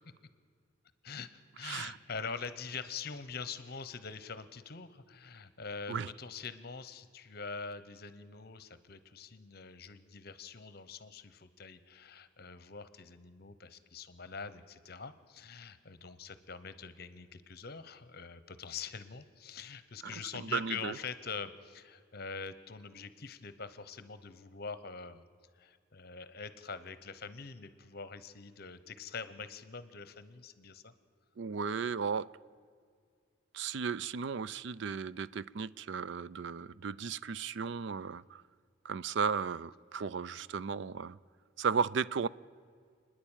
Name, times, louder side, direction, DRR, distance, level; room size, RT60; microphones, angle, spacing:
voice 1, 1.0-25.2 25.5-30.9, left 5 dB, 50° left, 0.9 m, -44 dB
voice 2, 1.6-2.0 5.9-6.1 20.0-20.9 31.4-32.3 33.5-38.4 38.8-41.2 41.6-42.3, right 6 dB, 60° right, 0.4 m, -35 dB
28.0 x 10.5 x 8.9 m
head